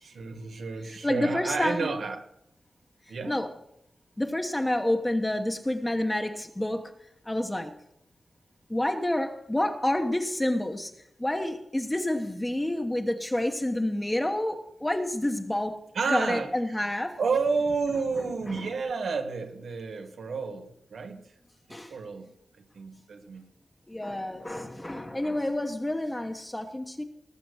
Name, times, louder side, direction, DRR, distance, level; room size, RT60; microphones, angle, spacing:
voice 1, 0.0-2.3 3.1-3.4 15.9-16.5 17.2-21.3 21.7-22.3 22.5-23.4, right 4 dB, 85° right, 1.7 m, -31 dB
voice 2, 1.0-1.9 3.3-3.5 4.2-6.9 7.3-7.7 8.7-10.9 11.2-15.8 16.1-17.2 18.5-18.6 21.7-21.9 23.9-27.0, left 1 dB, 15° left, 1.1 m, -28 dB
19.5 x 6.9 x 6.4 m
wide cardioid pair, 115°, 0 cm